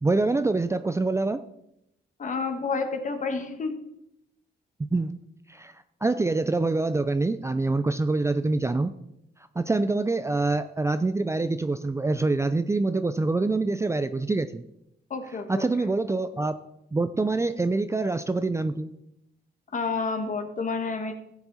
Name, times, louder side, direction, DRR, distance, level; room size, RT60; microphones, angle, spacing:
voice 1, 0.0-1.4 4.9-5.1 5.5-5.7 6.0-8.9 9.6-14.6 15.5-16.5 16.9-18.9, right 3 dB, 15° right, 11 dB, 0.4 m, -25 dB
voice 2, 2.2-3.7 15.1-15.9 19.7-21.1, left 4 dB, 45° left, 5 dB, 1.7 m, -30 dB
14.5 x 7.1 x 4.2 m, 0.81 s
cardioid pair, 95°, 18 cm